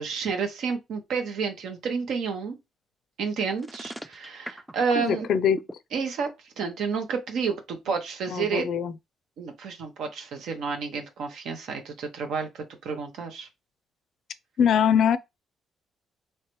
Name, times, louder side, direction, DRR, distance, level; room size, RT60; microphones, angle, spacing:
voice 1, 0.0-2.6 3.2-5.3 5.9-6.3 6.6-8.7 9.4-13.5, right 5 dB, 75° right, 0.9 m, -30 dB
sound 1, 3.6-5.7, equal, 5° right, 0.4 m, -39 dB
voice 2, 5.0-5.6 8.3-8.9 14.6-15.2, left 8 dB, 70° left, 0.4 m, -22 dB
3.2 x 3.1 x 3.0 m
cardioid pair, 90°, 0 cm